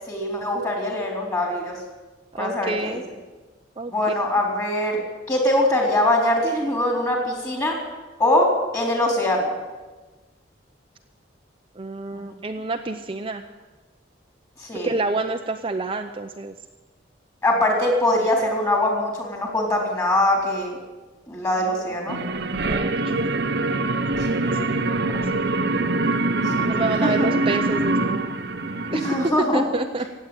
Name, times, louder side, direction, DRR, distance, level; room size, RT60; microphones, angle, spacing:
voice 1, 0.1-1.8 2.4-3.0 3.9-5.0 5.3-7.8 8.2-9.5 14.6-14.9 17.4-20.8 21.3-22.2 24.4-24.6 25.1-25.3 26.5-26.7 27.0-27.3 28.9-29.7, left 1 dB, 15° left, 0 dB, 3.9 m, -22 dB
voice 2, 2.3-3.0 3.8-3.9 11.8-13.4 14.8-16.5 22.6-23.1 24.7-25.1 26.6-28.3 28.9-30.0, right 3 dB, 30° right, 5 dB, 0.6 m, -28 dB
sound 1, 22.1-29.3, right 2 dB, 55° right, 0.9 m, -24 dB
16.5 x 8.5 x 10.0 m, 1.2 s
head